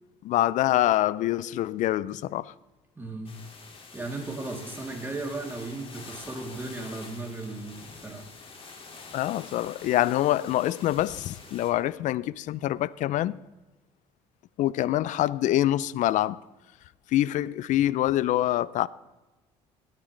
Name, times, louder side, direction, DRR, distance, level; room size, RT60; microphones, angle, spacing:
voice 1, 0.2-2.5 9.1-13.4 14.6-16.4 17.1-18.9, left 14 dB, 60° left, 0.4 m, -25 dB
voice 2, 2.9-3.4 3.9-8.2, right 2 dB, 15° right, 3.0 m, -36 dB
sound 1, 3.2-11.7, left 4 dB, 40° left, 2.3 m, -46 dB
18.0 x 9.0 x 3.3 m
supercardioid pair, 80°, 14 cm